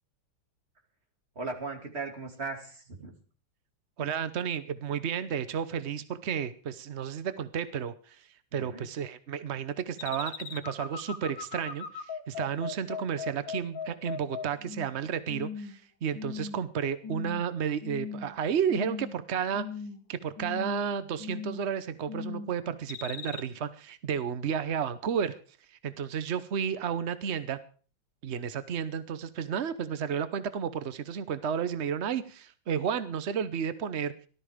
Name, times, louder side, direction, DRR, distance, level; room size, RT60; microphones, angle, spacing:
voice 1, 1.3-3.2 8.5-8.9, right 3 dB, 30° right, 3 dB, 2.8 m, -38 dB
voice 2, 4.0-19.6 20.1-25.4 25.7-27.6 28.2-34.1, right 7 dB, 70° right, 13 dB, 0.6 m, -32 dB
sound 1, 10.0-15.0 15.3-15.8 16.1-16.7 17.0-17.4 17.8-18.4 18.7-19.2 19.5-20.0 20.4-20.8 21.2-21.7 22.1-22.5 22.9-23.4, left 6 dB, 65° left, 2.0 m, -38 dB
18.0 x 12.5 x 5.0 m, 0.42 s
omnidirectional pair, 2.3 m